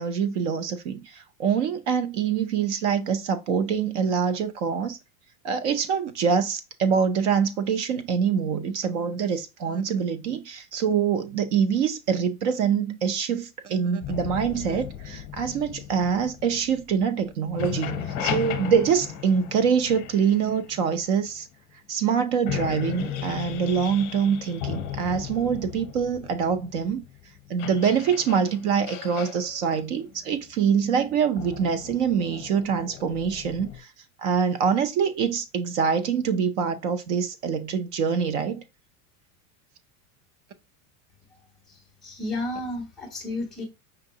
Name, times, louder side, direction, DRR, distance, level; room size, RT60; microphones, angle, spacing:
voice 1, 0.0-5.0 5.4-21.5 21.9-27.0 27.5-33.9 34.2-38.6, right 7 dB, 55° right, 0.7 m, -25 dB
sound 1, 14.0-17.2 17.5-21.4 22.0-22.1 22.4-33.8, left 9 dB, 35° left, 0.7 m, -36 dB
voice 2, 41.7-43.6, left 2 dB, ahead, 0.3 m, -32 dB
5.2 x 3.4 x 2.8 m
supercardioid pair, 170°, 43 cm